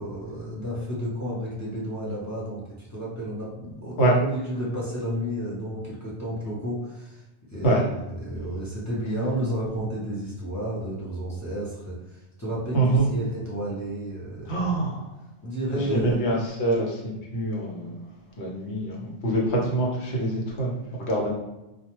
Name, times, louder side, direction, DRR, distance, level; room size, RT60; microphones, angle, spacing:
voice 1, 0.0-7.2 7.5-14.7 15.4-16.4, equal, 20° left, -7 dB, 0.6 m, -32 dB
voice 2, 12.7-13.1 14.5-15.1 15.9-18.0 18.4-21.3, right 2 dB, 75° left, -3 dB, 1.0 m, -25 dB
2.3 x 2.2 x 2.9 m, 0.98 s
omnidirectional pair, 1.2 m